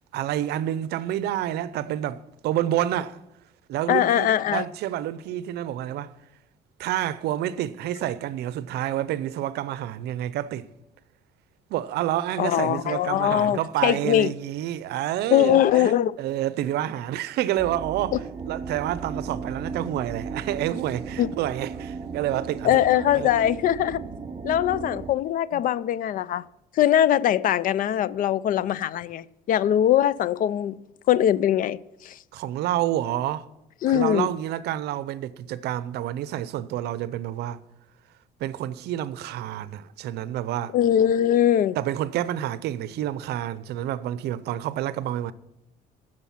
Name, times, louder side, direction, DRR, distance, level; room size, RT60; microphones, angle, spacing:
voice 1, 0.1-3.2 3.7-6.1 6.8-10.7 11.7-15.9 16.2-18.2 18.5-22.8 23.1-23.3 25.5-25.6 32.3-33.5 33.9-37.6 38.4-40.8 41.8-45.3, right 12 dB, 75° right, 0.6 m, -28 dB
voice 2, 3.9-4.6 12.4-14.3 15.3-16.1 21.2-21.3 22.6-24.0 24.4-26.4 26.8-30.8 31.1-31.8 32.0-32.2 33.8-34.3 40.7-41.8, left 11 dB, 55° left, 0.4 m, -21 dB
sound 1, 17.6-25.1, right 5 dB, 20° right, 0.9 m, -36 dB
15.5 x 6.4 x 5.8 m
cardioid pair, 110°, 17 cm